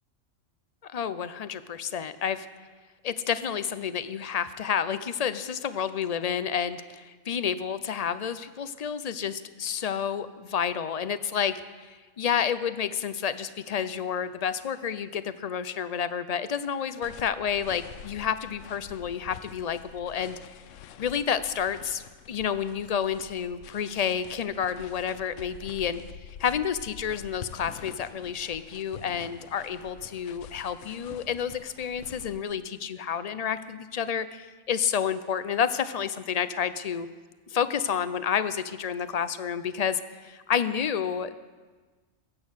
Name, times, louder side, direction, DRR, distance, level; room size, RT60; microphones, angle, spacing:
voice 1, 0.9-2.5 3.0-11.6 11.9-20.4 21.0-26.0 26.4-37.1 37.5-41.4, left 8 dB, 50° left, 13 dB, 0.4 m, -30 dB
sound 1, 17.0-32.4, left 9 dB, 70° left, 0.9 m, -47 dB
22.0 x 8.5 x 6.3 m, 1.4 s
omnidirectional pair, 1.4 m